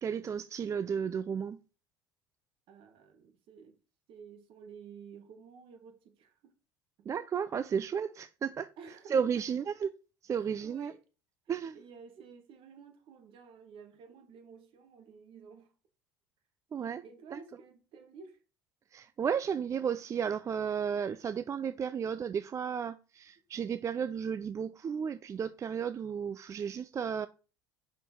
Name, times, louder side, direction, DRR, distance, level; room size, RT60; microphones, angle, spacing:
voice 1, 0.0-1.6 7.1-8.7 9.1-9.9 10.2-10.9 11.5-11.8 16.7-17.0 17.3-17.4 18.9-27.3, right 7 dB, 30° right, 0.3 m, -33 dB
voice 2, 2.7-3.8 4.1-6.5 8.8-9.2 10.6-11.0 11.7-15.7 17.0-18.4, right 6 dB, 55° right, 1.3 m, -52 dB
5.4 x 4.5 x 4.3 m
hypercardioid pair, 65°, 11 cm